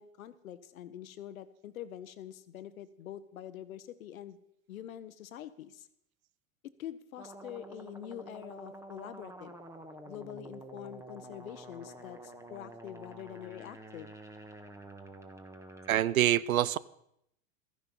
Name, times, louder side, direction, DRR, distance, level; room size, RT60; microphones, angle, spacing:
voice 1, 0.0-4.4 4.7-5.9 6.8-9.5 10.0-14.1, left 11 dB, 80° left, 13 dB, 1.1 m, -45 dB
sound 1, 7.2-16.0, right 1 dB, 5° right, 1.3 m, -49 dB
voice 2, 15.9-16.8, right 12 dB, 90° right, 21 dB, 0.7 m, -25 dB
14.0 x 10.5 x 5.4 m, 0.76 s
hypercardioid pair, 110°, 41 cm